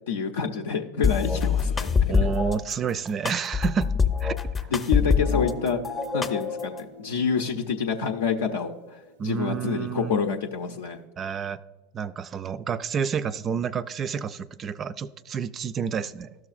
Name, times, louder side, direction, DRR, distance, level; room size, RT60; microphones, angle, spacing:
voice 1, 0.1-2.3 4.7-5.8 6.1-9.0 9.2-11.0, left 6 dB, 80° left, 0.6 m, -27 dB
sound 1, 1.0-2.6 3.3-5.5 5.8-6.8, left 6 dB, 25° left, 0.6 m, -24 dB
voice 2, 2.1-3.9 4.2-4.4 4.6-4.7 9.2-10.1 11.2-11.6 11.9-16.4, right 7 dB, 35° right, 0.3 m, -29 dB
Guitar, 5.2-9.2, equal, 85° right, 0.6 m, -43 dB
12.5 x 6.1 x 2.4 m
hypercardioid pair, 90°, 0 cm